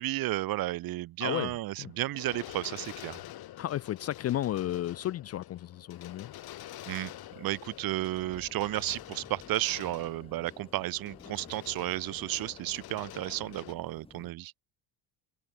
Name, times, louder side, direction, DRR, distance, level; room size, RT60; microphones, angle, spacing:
voice 1, 0.0-3.2 6.9-7.1 7.4-14.5, right 16 dB, 45° right, 0.8 m, -33 dB
voice 2, 1.2-1.9 3.6-6.3, left 12 dB, 35° left, 0.4 m, -33 dB
sound 1, 1.8-13.7, left 14 dB, 50° left, 3.4 m, -47 dB
sound 2, 5.9-14.3, left 3 dB, 10° left, 7.4 m, -55 dB
cardioid pair, 175°, 48 cm